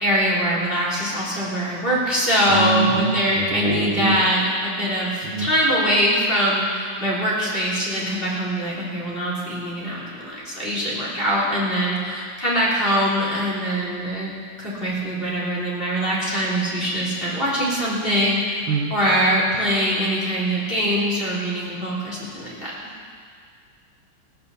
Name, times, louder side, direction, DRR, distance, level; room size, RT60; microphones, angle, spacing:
voice 1, 0.0-14.3 14.6-18.6 18.9-22.7, equal, 25° left, -7 dB, 3.5 m, -23 dB
voice 2, 2.5-4.2 5.2-5.5 18.7-18.9, right 4 dB, 75° right, 2 dB, 1.9 m, -24 dB
16.5 x 8.9 x 7.0 m, 2.1 s
omnidirectional pair, 2.3 m